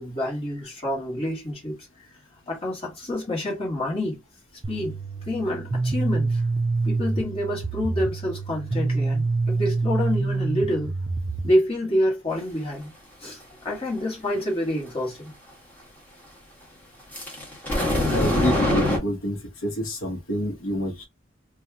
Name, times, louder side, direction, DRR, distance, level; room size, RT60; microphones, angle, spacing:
voice 1, 0.0-1.8 2.5-4.2 4.7-4.9 5.3-6.4 6.8-10.9 11.4-12.9 13.2-15.3, left 1 dB, 30° left, 1.4 m, -27 dB
sound 1, 4.6-11.5, right 3 dB, 30° right, 0.4 m, -26 dB
sound 2, 17.1-19.0, left 1 dB, 10° left, 1.1 m, -23 dB
voice 2, 18.1-21.0, equal, 85° left, 1.0 m, -27 dB
2.8 x 2.3 x 3.4 m
head